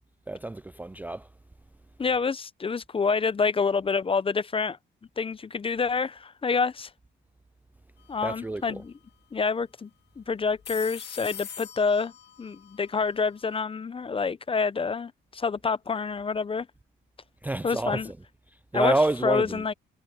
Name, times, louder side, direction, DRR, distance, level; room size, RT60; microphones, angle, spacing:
voice 1, 0.3-1.3 8.2-8.8 17.4-18.1 18.7-19.6, right 2 dB, 10° right, 0.4 m, -28 dB
voice 2, 2.0-4.8 5.2-6.9 8.1-8.9 9.3-9.9 10.2-12.1 12.4-16.7 17.6-18.1 18.7-19.0 19.2-19.7, left 5 dB, 25° left, 0.7 m, -27 dB
sound 1, 8.0-8.3 8.5-8.6 10.4-13.6, left 9 dB, 55° left, 1.2 m, -44 dB
cardioid pair, 90°, 20 cm